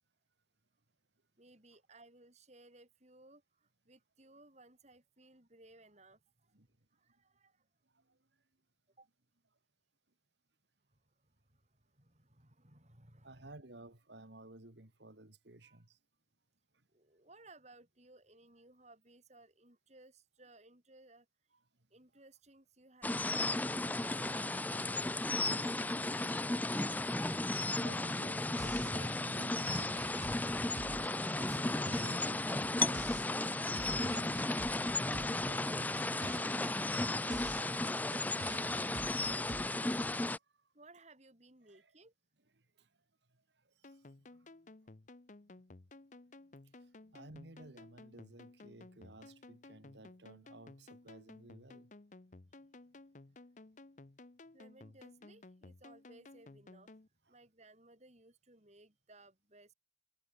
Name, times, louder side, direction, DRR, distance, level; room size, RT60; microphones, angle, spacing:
voice 1, 1.4-6.5 6.9-7.6 9.0-9.1 10.9-13.5 15.6-15.8 16.9-21.3 21.9-23.6 37.2-40.0 40.7-42.1 44.2-44.7 45.4-45.6 46.4-47.2 52.4-53.0 53.3-53.4 54.5-56.9 57.3-59.7, right 2 dB, 35° right, 4.8 m, -62 dB
voice 2, 13.2-16.0 23.9-25.3 25.6-25.8 26.2-26.5 27.6-30.2 30.6-34.4 35.0-36.0 40.3-40.4 41.6-41.9 42.8-42.9 43.3-44.1 47.1-51.9, right 2 dB, 65° right, 2.4 m, -55 dB
sound 1, 23.0-40.4, left 2 dB, 10° left, 0.4 m, -34 dB
sound 2, 28.6-40.4, right 4 dB, 85° right, 0.9 m, -50 dB
sound 3, 43.8-57.1, left 2 dB, 40° left, 0.8 m, -56 dB
head